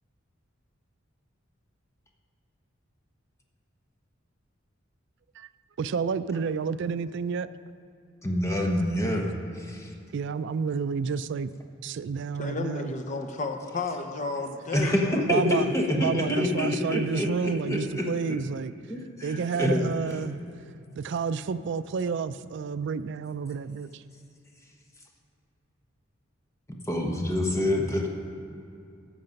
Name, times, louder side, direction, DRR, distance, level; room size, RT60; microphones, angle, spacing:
voice 1, 5.8-7.5 10.1-11.5 11.8-12.9 15.3-15.7 16.0-18.7 19.2-20.4 21.0-24.0, right 5 dB, 60° right, 14 dB, 0.3 m, -30 dB
voice 2, 8.2-9.9 14.7-18.4 18.9-20.2 26.9-28.1, left 1 dB, 15° left, 0 dB, 1.0 m, -27 dB
voice 3, 12.2-15.2, left 3 dB, 35° left, 5 dB, 0.7 m, -33 dB
13.0 x 6.7 x 5.2 m, 2.6 s
head